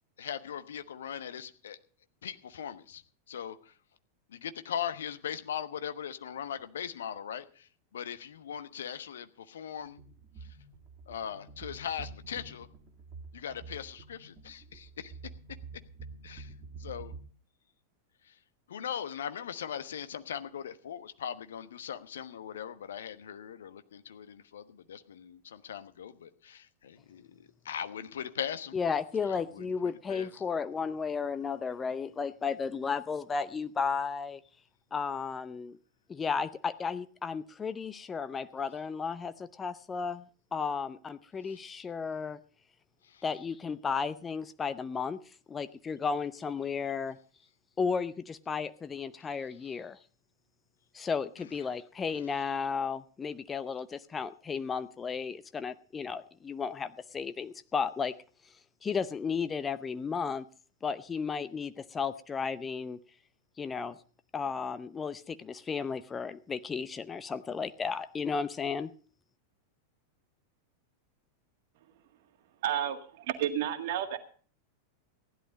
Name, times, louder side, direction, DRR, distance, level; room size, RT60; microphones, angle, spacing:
voice 1, 0.2-1.8 2.2-3.0 3.3-3.7 4.3-10.0 11.1-12.7 13.3-15.1 16.2-16.5 16.8-17.1 18.2-18.3 18.7-28.8 29.3-29.7 30.1-30.4 41.5-41.6 43.0-43.2 52.1-52.2, left 9 dB, 65° left, 11 dB, 1.1 m, -40 dB
sound 1, 9.8-17.2, right 4 dB, 35° right, 1.9 m, -48 dB
voice 2, 28.7-34.4 34.9-35.8 36.1-40.2 40.5-42.4 43.2-45.2 45.5-47.2 47.8-50.0 50.9-58.1 58.8-60.4 60.8-63.0 63.6-64.0 64.3-68.9, left 5 dB, 20° left, 13 dB, 0.7 m, -34 dB
voice 3, 72.6-74.2, right 10 dB, 50° right, 8 dB, 1.8 m, -31 dB
15.5 x 11.0 x 5.2 m, 0.42 s
figure-of-eight pair, 90°, 0 cm